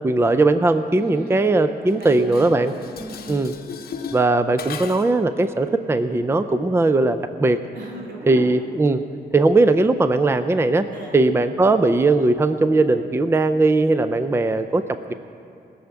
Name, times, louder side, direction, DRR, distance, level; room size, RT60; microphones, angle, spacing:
voice 1, 0.0-2.7 3.3-3.5 4.1-7.6 8.3-9.0 9.3-10.9 11.1-14.8 15.1-15.2, right 2 dB, 15° right, 10 dB, 0.5 m, -19 dB
voice 2, 1.0-1.4 1.8-3.4 7.7-8.5 10.9-11.2, right 1 dB, 90° right, -1 dB, 3.2 m, -36 dB
Dishes pots and pans, 1.9-5.3, left 6 dB, 65° left, 0.8 m, -37 dB
17.5 x 7.1 x 8.8 m, 2.8 s
wide cardioid pair, 130°, 17 cm